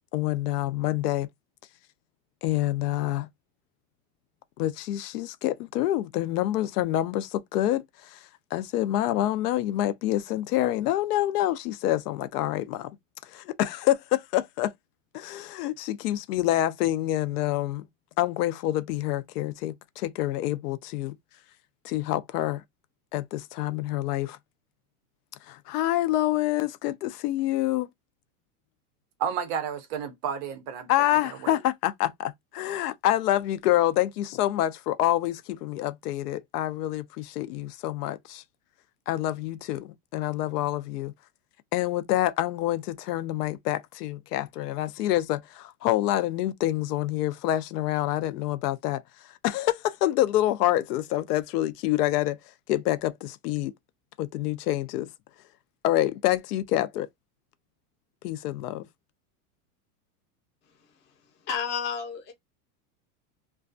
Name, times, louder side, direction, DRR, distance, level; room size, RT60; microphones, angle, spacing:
voice 1, 0.1-1.3 2.4-3.3 4.6-8.2 8.5-12.9 13.2-14.7 15.1-17.9 18.2-21.1 21.8-22.6 23.1-24.4 25.5-27.9 30.9-38.4 39.1-41.1 41.7-49.0 49.4-52.4 52.7-53.7 54.2-55.1 55.8-57.1 58.2-58.9, left 14 dB, 90° left, 0.6 m, -27 dB
voice 2, 29.2-31.6, right 7 dB, 35° right, 0.4 m, -32 dB
voice 3, 60.8-61.1 61.4-62.3, left 7 dB, 25° left, 0.6 m, -32 dB
2.3 x 2.3 x 2.5 m
supercardioid pair, 160°, 45 cm